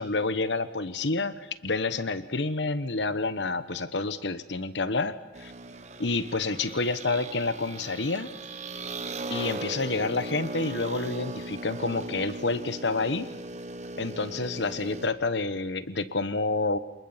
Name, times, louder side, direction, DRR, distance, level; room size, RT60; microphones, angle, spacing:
voice 1, 0.0-5.5 6.0-8.3 9.3-13.3 14.0-16.8, left 3 dB, 80° left, 13 dB, 1.1 m, -29 dB
sound 1, 5.3-15.1, right 2 dB, 40° right, 1.4 m, -38 dB
26.5 x 20.5 x 7.4 m, 1.0 s
head